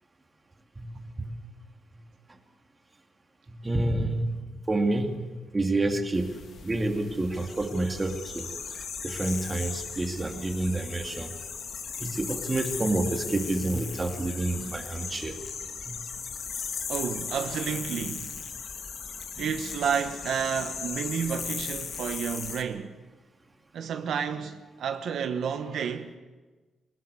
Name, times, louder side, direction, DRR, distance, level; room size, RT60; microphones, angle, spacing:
voice 1, 0.8-1.3 3.5-4.4 4.7-5.2 5.5-8.5 9.0-11.3 12.0-15.4 15.9-16.0, right 2 dB, 20° right, 2.5 m, -28 dB
sound 1, 6.1-22.6, left 6 dB, 55° left, 2.0 m, -37 dB
voice 2, 16.9-18.4 19.4-23.0 23.7-26.1, right 7 dB, 70° right, 1.1 m, -31 dB
22.5 x 19.5 x 6.9 m
cardioid pair, 120°, 0 cm